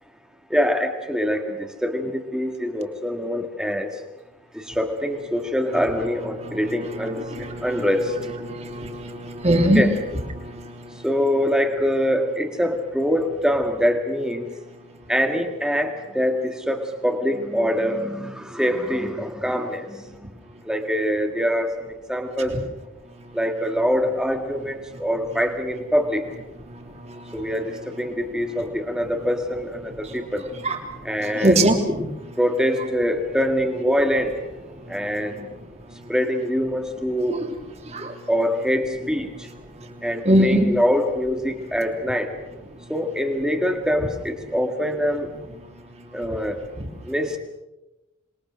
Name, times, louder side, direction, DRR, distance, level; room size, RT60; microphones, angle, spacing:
voice 1, 0.5-3.9 4.5-7.2 7.6-8.2 9.8-9.9 11.0-14.5 15.1-20.3 20.6-22.6 23.3-26.2 27.3-30.5 31.1-31.6 32.4-35.5 36.1-37.4 38.3-39.5 40.0-42.3 42.9-45.3 46.1-46.6 47.1-47.4, equal, 5° right, 5 dB, 1.9 m, -24 dB
voice 2, 6.4-9.9 10.4-10.5 22.5-22.6 30.6-30.8 31.2-32.1 37.3-37.5 37.9-38.1 40.2-40.6, right 1 dB, 30° right, 4 dB, 3.2 m, -22 dB
27.0 x 22.0 x 6.4 m, 0.96 s
head